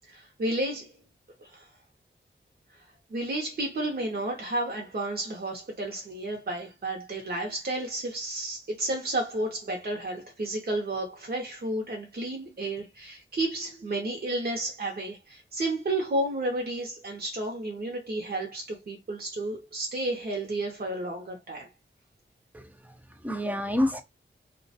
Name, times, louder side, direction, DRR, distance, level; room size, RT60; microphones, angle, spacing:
voice 1, 0.1-1.0 1.4-1.7 3.1-21.7, right 2 dB, 55° right, 0.7 m, -32 dB
voice 2, 22.5-24.0, left 1 dB, 10° right, 0.5 m, -29 dB
2.3 x 2.2 x 2.7 m
wide cardioid pair, 60°, 20 cm